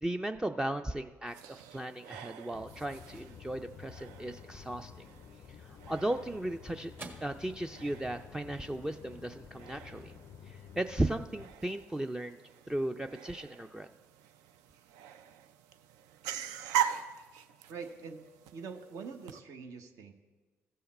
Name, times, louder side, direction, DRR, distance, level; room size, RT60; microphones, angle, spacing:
voice 1, 0.0-4.9 5.6-6.9 7.2-10.1 10.4-12.4 12.7-13.9, right 1 dB, 10° right, 7 dB, 0.4 m, -36 dB
sound 1, 1.3-19.4, right 10 dB, 80° right, 0.4 m, -42 dB
sound 2, 2.5-11.5, left 8 dB, 55° left, 0.4 m, -52 dB
sound 3, 5.7-14.3, right 3 dB, 35° right, 1.7 m, -57 dB
voice 2, 17.7-18.2 18.5-20.1, right 5 dB, 65° right, 6 dB, 1.0 m, -44 dB
14.5 x 5.6 x 4.2 m, 1.3 s
hypercardioid pair, 55°, 6 cm